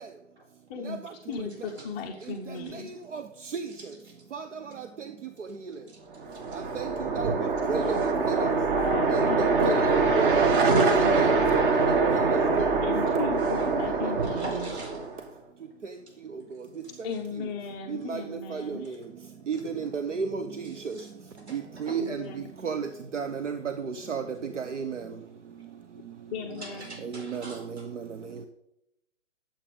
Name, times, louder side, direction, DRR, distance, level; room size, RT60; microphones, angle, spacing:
voice 1, 0.7-1.0 1.3-2.9 7.8-8.0 8.3-11.6 12.8-14.7 17.0-19.0 22.0-22.5 26.3-26.9, left 5 dB, 10° left, 0 dB, 0.4 m, -36 dB
voice 2, 1.8-2.3 3.7-3.9 5.9-6.0 6.3-6.4 13.6-13.7 14.1-15.1 20.6-21.0 21.5-22.0 26.6-27.9, right 2 dB, 60° right, 2 dB, 4.5 m, -43 dB
sound 1, 6.2-15.2, right 4 dB, 45° right, 1.7 m, -24 dB
voice 3, 19.5-20.4 21.8-22.0 22.6-22.8 23.1-23.6 24.1-24.2 24.6-25.0 27.3-27.4, right 6 dB, 80° right, 8 dB, 0.9 m, -30 dB
10.5 x 7.6 x 5.1 m, 0.85 s
figure-of-eight pair, 130°, 36 cm